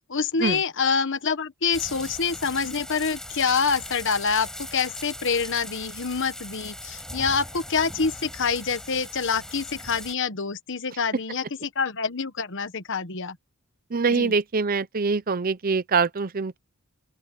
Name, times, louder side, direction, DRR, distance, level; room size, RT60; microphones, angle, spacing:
voice 1, 0.1-13.4 14.1-14.3, left 5 dB, 55° left, 1.2 m, -26 dB
sound 1, 1.7-10.1, left 1 dB, 5° left, 5.1 m, -39 dB
voice 2, 13.9-16.6, right 4 dB, 40° right, 0.6 m, -24 dB
open air
head